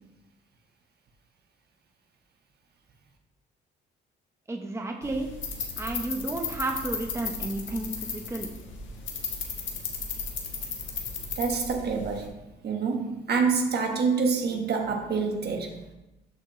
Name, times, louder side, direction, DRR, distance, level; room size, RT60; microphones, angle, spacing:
voice 1, 4.5-5.3 5.8-8.5, right 2 dB, 15° right, 0.9 m, -32 dB
sound 1, 5.0-12.3, left 5 dB, 70° left, 1.4 m, -35 dB
voice 2, 11.4-12.3 12.6-15.7, right 5 dB, 55° right, 1.2 m, -26 dB
13.0 x 4.4 x 3.1 m
cardioid pair, 90°, 20 cm